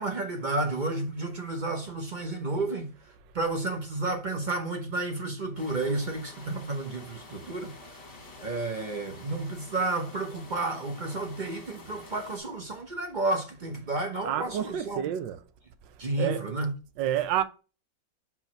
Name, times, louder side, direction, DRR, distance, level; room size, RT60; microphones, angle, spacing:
voice 1, 0.0-2.9 3.3-7.7 8.4-15.0 16.0-16.7, right 2 dB, 40° right, 0.6 m, -31 dB
sound 1, 5.6-12.4, left 3 dB, 35° left, 1.4 m, -49 dB
voice 2, 14.2-15.4 16.2-16.4 17.0-17.4, right 11 dB, 75° right, 1.3 m, -29 dB
4.7 x 3.9 x 5.6 m
omnidirectional pair, 2.1 m